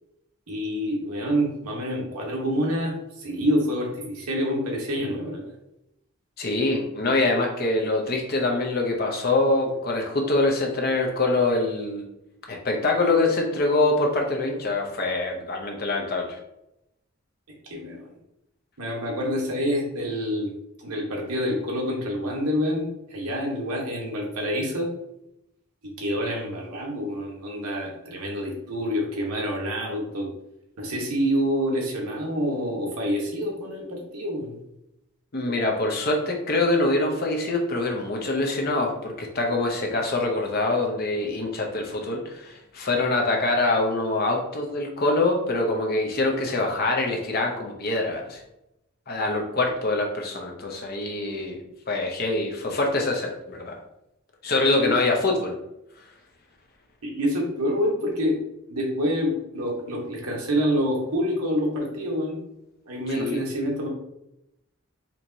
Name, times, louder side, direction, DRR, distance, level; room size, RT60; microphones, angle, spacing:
voice 1, 0.5-5.5 17.6-18.1 18.8-20.5 20.8-24.9 25.8-30.3 30.8-34.6 54.6-55.0 57.0-58.4 58.7-62.4 62.8-63.9, equal, 90° right, -1 dB, 1.1 m, -27 dB
voice 2, 6.4-12.0 12.5-16.4 35.3-48.4 49.1-51.6 51.9-53.8 54.4-55.5 63.1-63.4, left 2 dB, 45° left, 1 dB, 0.7 m, -24 dB
4.4 x 2.8 x 2.6 m, 0.85 s
head